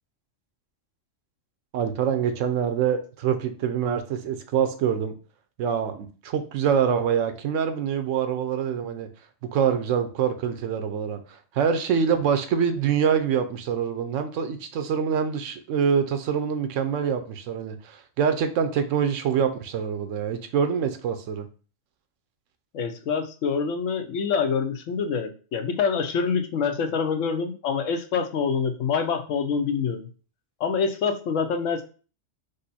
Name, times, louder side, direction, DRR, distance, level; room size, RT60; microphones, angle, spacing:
voice 1, 1.7-5.1 5.6-9.1 9.5-21.5, right 7 dB, 85° right, 1.0 m, -25 dB
voice 2, 22.7-30.0 30.6-31.8, left 6 dB, 85° left, 1.0 m, -26 dB
5.2 x 2.0 x 4.1 m
omnidirectional pair, 1.3 m